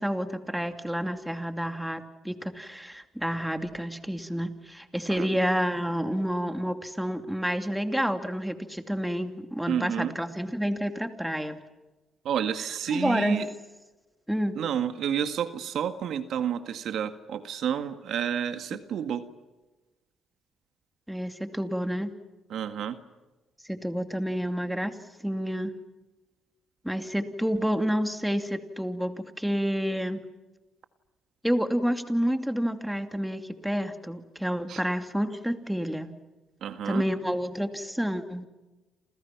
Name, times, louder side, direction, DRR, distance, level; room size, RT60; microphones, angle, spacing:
voice 1, 0.0-11.6 12.9-13.4 14.3-14.6 21.1-22.1 23.6-25.0 25.2-25.7 26.8-30.2 31.4-36.1 36.9-38.5, equal, 5° right, 7 dB, 2.6 m, -29 dB
voice 2, 9.7-10.1 12.2-13.5 14.6-19.2 22.5-23.0 34.7-34.8 36.6-37.1, right 8 dB, 70° right, 9 dB, 1.8 m, -30 dB
29.5 x 28.5 x 6.0 m, 1.1 s
cardioid pair, 90°, 0 cm